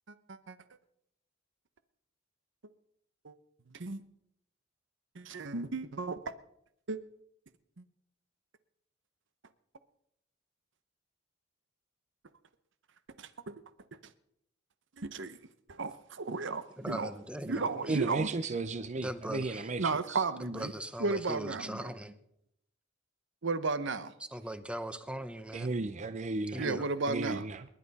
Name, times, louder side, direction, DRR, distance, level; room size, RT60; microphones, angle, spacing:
voice 1, 0.1-0.6 3.2-3.3 3.7-4.0 5.1-6.3 6.9-7.0 13.2-13.5 15.0-15.4 15.7-17.1 17.5-18.3 19.8-20.7 21.0-21.9 23.4-24.1 26.6-27.4, right 3 dB, 65° right, 0.9 m, -34 dB
voice 2, 16.8-18.0 19.0-19.7 20.4-22.1 24.3-25.7 26.5-26.9, right 1 dB, 5° right, 0.9 m, -40 dB
voice 3, 17.9-20.2 25.5-26.7 27.1-27.7, right 3 dB, 35° right, 0.5 m, -34 dB
29.0 x 11.5 x 4.2 m
head